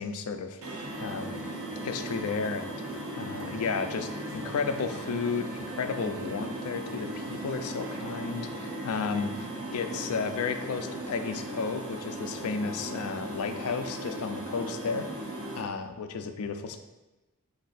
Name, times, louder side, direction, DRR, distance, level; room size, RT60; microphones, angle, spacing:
voice 1, 0.0-2.8 3.2-15.1 15.6-16.8, left 5 dB, 85° left, 7 dB, 0.4 m, -33 dB
sound 1, 0.6-15.6, right 1 dB, 75° right, 0.8 m, -38 dB
sound 2, 0.8-11.3, right 1 dB, 25° right, 0.6 m, -45 dB
4.9 x 2.6 x 4.1 m, 1.1 s
head